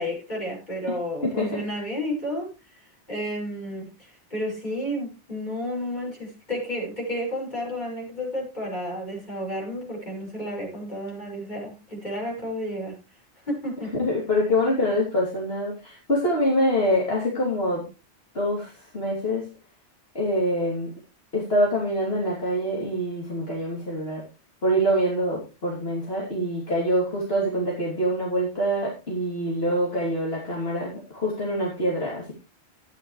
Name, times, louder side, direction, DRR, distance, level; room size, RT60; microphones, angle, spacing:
voice 1, 0.0-2.8 3.1-13.0 13.5-13.9, equal, 40° left, 6.4 m, -31 dB
voice 2, 1.2-1.6 14.0-17.9 18.3-19.5 20.2-20.9 21.3-24.2 24.6-32.3, equal, 65° left, 3.4 m, -25 dB
13.5 x 10.0 x 3.2 m
omnidirectional pair, 1.1 m